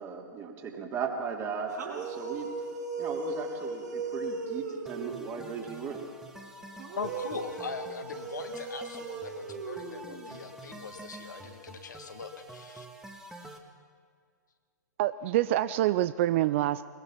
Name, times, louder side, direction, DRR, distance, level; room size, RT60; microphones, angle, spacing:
voice 1, 0.0-2.5 3.0-6.1, right 6 dB, 25° right, 1 dB, 3.2 m, -37 dB
sound 1, 1.7-5.4 6.8-10.4, right 3 dB, 65° right, 5.6 m, -37 dB
sound 2, 4.9-13.6, right 2 dB, 5° right, 1.8 m, -48 dB
voice 2, 7.0-12.9, left 5 dB, 70° left, 6 dB, 2.0 m, -41 dB
voice 3, 15.0-16.8, right 14 dB, 40° right, 15 dB, 0.5 m, -26 dB
21.5 x 21.5 x 5.8 m, 2.1 s
figure-of-eight pair, 115°, 10 cm